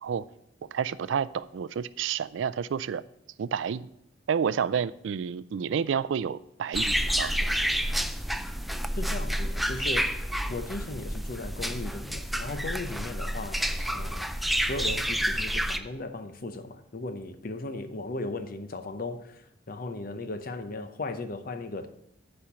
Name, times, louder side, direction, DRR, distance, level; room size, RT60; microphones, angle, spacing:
voice 1, 0.7-3.0 3.4-3.9 4.3-7.3, right 7 dB, 80° right, 0.4 m, -30 dB
sound 1, 6.7-15.8, equal, ahead, 0.4 m, -29 dB
voice 2, 9.0-10.2 10.5-14.3 14.6-21.9, left 2 dB, 50° left, 0.7 m, -37 dB
9.8 x 4.4 x 6.9 m
head